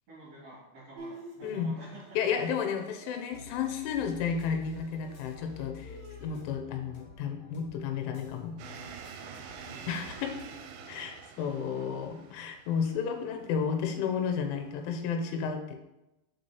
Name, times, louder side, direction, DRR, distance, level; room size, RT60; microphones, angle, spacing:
voice 1, 0.1-2.5 9.2-10.1 11.3-11.8, right 1 dB, 40° right, -11 dB, 3.3 m, -50 dB
Bowed string instrument, 1.0-6.4, right 2 dB, 65° right, 2.7 m, -50 dB
voice 2, 1.4-1.8 2.1-8.6 9.9-10.3 10.9-15.8, left 6 dB, 85° left, 4 dB, 3.2 m, -32 dB
sound 1, 3.3-10.5, left 4 dB, 65° left, 2.1 m, -49 dB
sound 2, 8.6-15.0, right 7 dB, 90° right, 3.1 m, -47 dB
6.9 x 6.0 x 3.1 m, 0.93 s
omnidirectional pair, 5.5 m